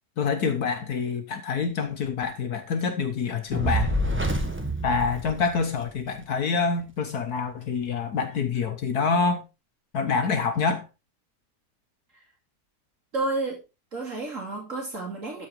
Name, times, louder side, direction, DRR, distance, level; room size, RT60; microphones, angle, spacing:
voice 1, 0.2-4.0 4.8-9.4 9.9-10.9, left 5 dB, 65° left, 1.5 m, -26 dB
Fire, 3.5-6.0, right 1 dB, 10° right, 1.3 m, -27 dB
voice 2, 13.1-13.6 13.9-15.5, right 2 dB, 50° right, 2.7 m, -30 dB
13.0 x 4.9 x 4.4 m
omnidirectional pair, 1.8 m